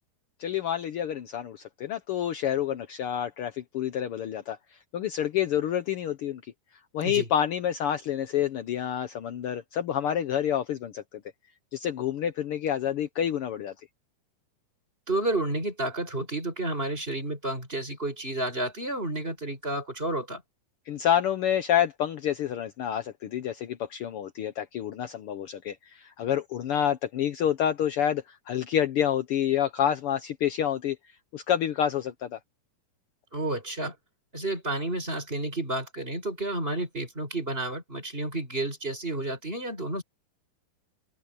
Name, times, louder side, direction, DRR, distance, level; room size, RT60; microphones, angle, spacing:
voice 1, 0.4-6.4 6.9-11.2 11.7-13.7 20.9-31.0 31.3-32.4, left 10 dB, 75° left, 1.3 m, -28 dB
voice 2, 15.1-20.4 33.3-33.9 34.3-40.0, right 2 dB, 15° right, 6.4 m, -31 dB
open air
omnidirectional pair, 3.7 m